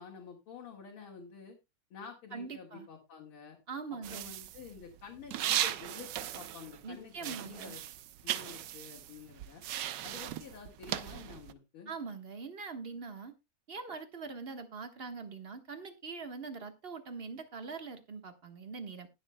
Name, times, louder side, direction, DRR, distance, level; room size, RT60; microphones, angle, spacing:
voice 1, 0.0-1.6 1.9-3.6 4.1-7.8 8.2-9.6 10.0-11.9, left 6 dB, 75° left, -3 dB, 2.6 m, -49 dB
voice 2, 2.3-2.9 3.7-4.3 6.8-7.8 11.9-13.3 13.7-19.1, right 4 dB, 30° right, 7 dB, 1.3 m, -43 dB
sound 1, 4.0-6.9 7.2-11.5, right 12 dB, 70° right, 1.1 m, -37 dB
20.0 x 7.1 x 2.2 m, 0.23 s
omnidirectional pair, 2.4 m